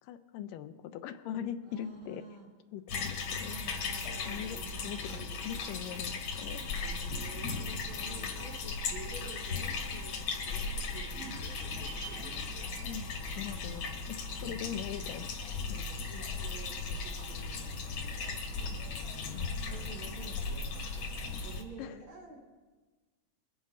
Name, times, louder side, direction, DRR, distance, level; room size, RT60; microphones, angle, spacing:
voice 1, 0.0-2.2 2.7-3.6 4.2-6.7 12.8-13.1 13.4-15.3 15.7-15.8 18.7-18.8 19.3-19.6 21.8-22.1, left 10 dB, 80° left, 10 dB, 2.2 m, -41 dB
voice 2, 1.6-2.5 3.5-5.4 6.6-12.5 13.5-13.9 14.4-14.8 15.7-18.4 18.9-22.4, right 2 dB, 45° right, 0 dB, 2.0 m, -50 dB
sound 1, 2.9-21.6, left 4 dB, 55° left, 1.8 m, -37 dB
sound 2, 11.1-15.6 15.9-16.0, right 7 dB, 70° right, 1.5 m, -51 dB
21.5 x 9.5 x 4.1 m, 1.3 s
omnidirectional pair, 4.0 m